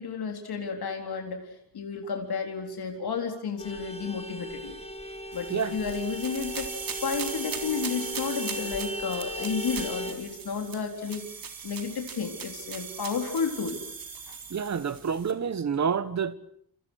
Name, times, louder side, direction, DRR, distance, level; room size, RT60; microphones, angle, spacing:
voice 1, 0.0-4.8 5.3-6.7 7.0-11.2 11.6-13.8 14.3-14.4, left 5 dB, 75° left, 3.9 m, -32 dB
Vehicle horn car horn honking, 3.6-10.1, equal, 15° left, 1.9 m, -37 dB
sound 1, 5.3-15.3, right 6 dB, 60° right, 3.8 m, -39 dB
voice 2, 14.5-16.3, right 6 dB, 45° right, 1.3 m, -28 dB
29.5 x 27.5 x 6.5 m
wide cardioid pair, 155°, 38 cm